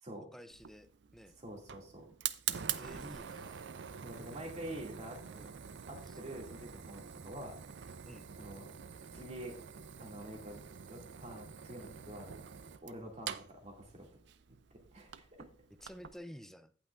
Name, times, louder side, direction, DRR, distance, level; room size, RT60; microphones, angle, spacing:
voice 1, 0.3-0.9 1.1-1.3 2.7-3.7 4.3-4.6 5.3-5.5 6.1-6.2 8.0-8.3 15.8-16.7, equal, ahead, 10 dB, 0.4 m, -51 dB
Fire, 0.5-16.2, right 9 dB, 65° right, 0.5 m, -45 dB
voice 2, 1.4-2.1 4.0-5.2 5.9-7.6 8.4-8.8 9.1-9.6 10.0-10.6 10.9-12.4 12.8-14.1 14.5-14.6 14.9-15.5, right 1 dB, 40° right, 1 dB, 2.3 m, -46 dB
16.5 x 5.8 x 2.5 m, 0.42 s
head